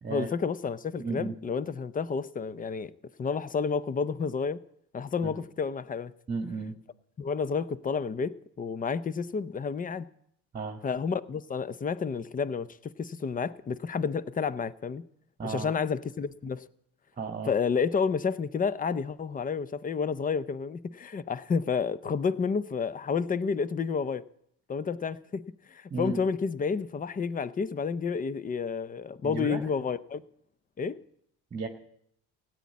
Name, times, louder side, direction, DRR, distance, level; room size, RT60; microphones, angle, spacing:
voice 1, 0.1-2.9 3.2-4.6 4.9-6.1 7.2-10.1 10.8-15.0 15.4-16.6 17.4-24.2 24.7-30.2 30.8-31.0, left 5 dB, 25° left, 0.6 m, -30 dB
voice 2, 1.0-1.4 5.2-5.4 6.3-6.7 10.5-10.8 15.4-15.7 17.2-17.5 25.9-26.2 29.2-29.6 31.5-31.7, right 4 dB, 20° right, 1.7 m, -34 dB
16.0 x 9.4 x 8.4 m
cardioid pair, 100°, 37 cm